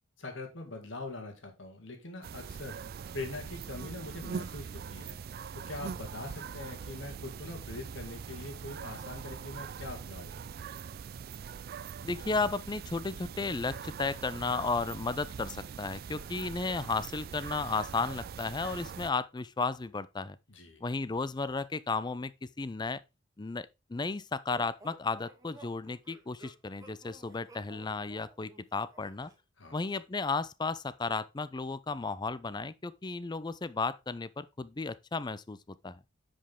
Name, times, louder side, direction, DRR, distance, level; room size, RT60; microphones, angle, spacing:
voice 1, 0.2-2.8 3.1-5.2 5.7-10.4 20.5-20.8 29.6-29.8, left 2 dB, 70° left, 2.3 m, -43 dB
sound 1, 2.2-19.1, right 6 dB, 50° right, 0.3 m, -42 dB
voice 2, 12.0-20.4 20.8-22.3 22.6-23.0 23.4-29.3 29.7-36.0, left 4 dB, 20° left, 0.4 m, -34 dB
sound 2, 24.5-29.4, right 2 dB, 20° right, 1.6 m, -54 dB
9.9 x 5.3 x 3.6 m
head